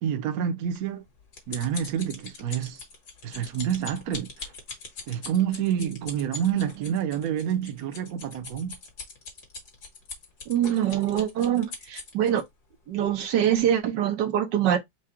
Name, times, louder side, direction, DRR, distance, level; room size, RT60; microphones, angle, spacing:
voice 1, 0.0-1.0 1.5-2.8 3.2-4.5 5.1-8.8, right 9 dB, 60° right, 1.2 m, -28 dB
sound 1, 0.8-12.4 13.1-13.2 13.6-13.7, left 4 dB, 65° left, 2.2 m, -41 dB
voice 2, 10.5-12.4 12.9-14.8, right 10 dB, 80° right, 1.4 m, -24 dB
4.8 x 2.3 x 4.4 m
omnidirectional pair, 1.9 m